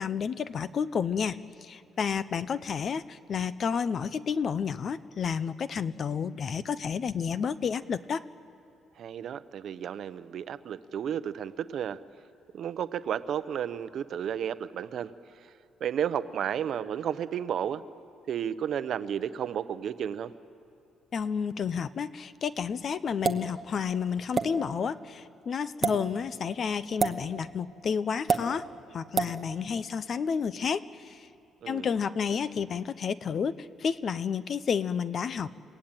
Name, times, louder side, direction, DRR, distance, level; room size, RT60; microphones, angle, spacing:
voice 1, 0.0-8.2 21.1-31.3 31.7-35.5, left 6 dB, 40° left, 15 dB, 0.6 m, -31 dB
voice 2, 9.0-12.0 12.5-15.1 15.8-17.8 18.3-20.3 31.6-31.9, right 9 dB, 50° right, 13 dB, 0.7 m, -32 dB
sound 1, 23.2-23.5 24.3-24.5 25.7-26.0 27.0-27.2 28.3-28.4 29.2-29.3, right 5 dB, 25° right, 1.0 m, -25 dB
30.0 x 17.5 x 9.0 m, 2.7 s
cardioid pair, 160°, 0 cm